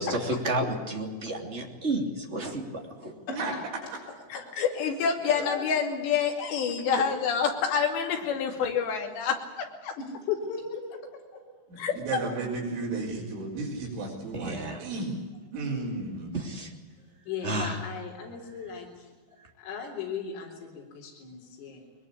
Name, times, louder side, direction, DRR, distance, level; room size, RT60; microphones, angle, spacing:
voice 1, 0.0-3.1 14.3-14.8 16.3-16.7 17.4-17.8, right 1 dB, 20° right, 1 dB, 2.0 m, -31 dB
voice 2, 4.3-9.9 11.8-11.9, left 6 dB, 60° left, 3 dB, 4.6 m, -27 dB
voice 3, 5.2-5.7 10.0-11.0 11.3-11.4 17.3-19.1 19.6-21.8, left 6 dB, 80° left, -2 dB, 6.4 m, -36 dB
voice 4, 6.7-7.1 11.7-15.2 15.5-16.3, right 3 dB, 65° right, -6 dB, 6.7 m, -33 dB
22.0 x 21.0 x 8.5 m, 1.3 s
omnidirectional pair, 5.8 m